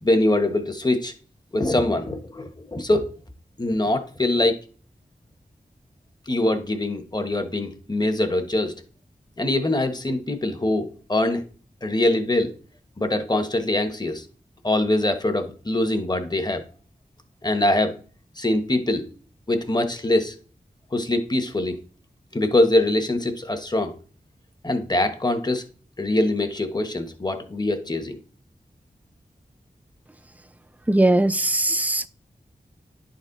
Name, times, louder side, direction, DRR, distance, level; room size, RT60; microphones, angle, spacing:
voice 1, 0.0-1.1 1.5-3.1 3.6-4.6 6.3-8.7 9.4-11.4 11.8-12.5 13.0-14.2 14.6-16.6 17.4-17.9 18.4-19.1 19.5-20.3 20.9-21.8 22.3-23.9 24.6-25.6 26.0-28.2, left 1 dB, 25° left, 1.2 m, -23 dB
voice 2, 30.9-32.1, right 1 dB, 10° right, 0.5 m, -20 dB
10.5 x 4.2 x 4.0 m
wide cardioid pair, 60°, 17 cm